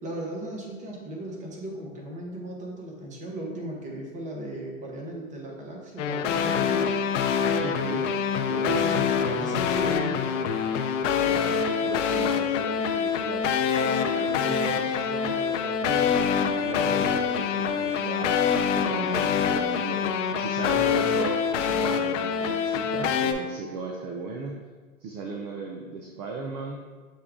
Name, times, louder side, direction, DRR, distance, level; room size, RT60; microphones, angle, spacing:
voice 1, 0.0-7.0 8.7-10.6, right 1 dB, 20° right, -1 dB, 0.9 m, -37 dB
sound 1, 6.0-23.3, left 7 dB, 65° left, 0.5 m, -25 dB
voice 2, 7.6-8.1 8.5-9.1 11.1-13.5 13.8-20.0 20.4-24.6 25.0-26.8, right 3 dB, 35° right, 1 dB, 0.4 m, -36 dB
6.5 x 2.2 x 3.5 m, 1.4 s
hypercardioid pair, 125°, 40 cm